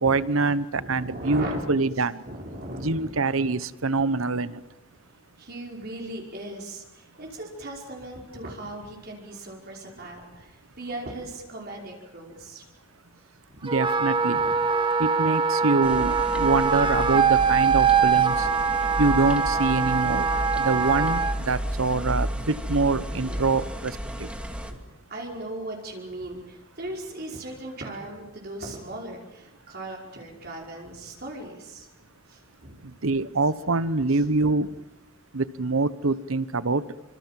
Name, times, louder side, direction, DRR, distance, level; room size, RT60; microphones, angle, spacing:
voice 1, 0.0-2.2 2.8-4.6 13.6-14.4 15.0-18.5 19.0-24.3 32.8-34.7 35.3-36.8, right 3 dB, 85° right, 16 dB, 1.0 m, -25 dB
voice 2, 0.7-1.6 2.3-3.1 5.4-12.6 13.5-13.6 14.4-14.6 23.2-23.5 24.0-24.3 24.7-24.8 25.1-31.9 32.3-32.8 34.1-34.2, right 1 dB, 50° right, -1 dB, 5.3 m, -38 dB
Wind instrument woodwind instrument, 13.7-21.4, right 5 dB, 25° right, 1.7 m, -23 dB
sound 1, 15.8-24.7, equal, 5° right, 2.4 m, -32 dB
28.0 x 25.5 x 7.6 m, 0.94 s
head